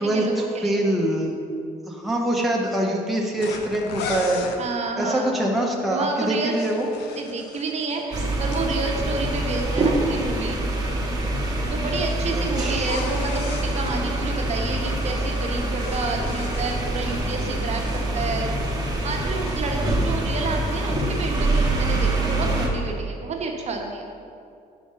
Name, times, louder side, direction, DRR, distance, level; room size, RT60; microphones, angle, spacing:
voice 1, 0.0-0.8 4.6-5.4 5.9-6.6 7.1-10.6 11.7-18.5 19.0-24.2, right 3 dB, 40° right, 1 dB, 0.9 m, -30 dB
voice 2, 0.6-1.4 1.9-4.4 5.0-6.9 12.3-12.9, right 1 dB, ahead, -2 dB, 0.7 m, -24 dB
sound 1, 3.4-4.6 6.3-8.7 12.7-14.0 15.4-17.3 17.6-18.0, left 4 dB, 80° left, 0.7 m, -36 dB
sound 2, 8.1-22.7, right 1 dB, 20° right, 1.1 m, -25 dB
5.2 x 4.9 x 5.5 m, 2.5 s
cardioid pair, 110°, 17 cm